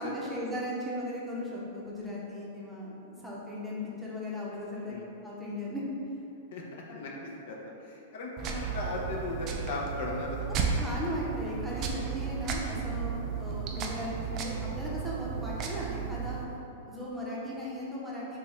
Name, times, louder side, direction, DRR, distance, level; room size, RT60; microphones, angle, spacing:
voice 1, 0.0-2.9 3.2-4.9 5.2-5.8 10.7-16.4 16.9-18.4, left 1 dB, 5° right, -7 dB, 0.7 m, -37 dB
voice 2, 6.5-10.8 13.4-13.6, left 2 dB, 65° left, -2 dB, 0.6 m, -37 dB
sound 1, 8.4-16.4, right 6 dB, 35° right, 0.4 m, -34 dB
3.4 x 3.0 x 3.1 m, 2.7 s
hypercardioid pair, 140°, 0 cm